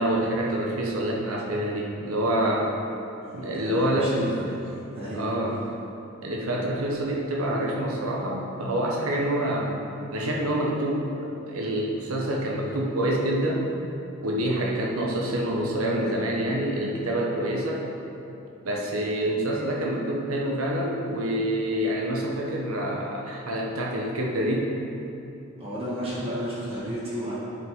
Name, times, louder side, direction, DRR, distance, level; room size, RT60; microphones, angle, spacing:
voice 1, 0.0-2.7 3.3-4.4 5.1-5.6 6.2-9.8 10.1-11.1 11.5-13.7 14.2-17.8 18.6-24.7, right 1 dB, 85° right, -2 dB, 0.9 m, -26 dB
voice 2, 3.2-5.3 25.6-27.3, equal, 25° right, -9 dB, 1.5 m, -33 dB
9.3 x 5.4 x 3.6 m, 2.8 s
head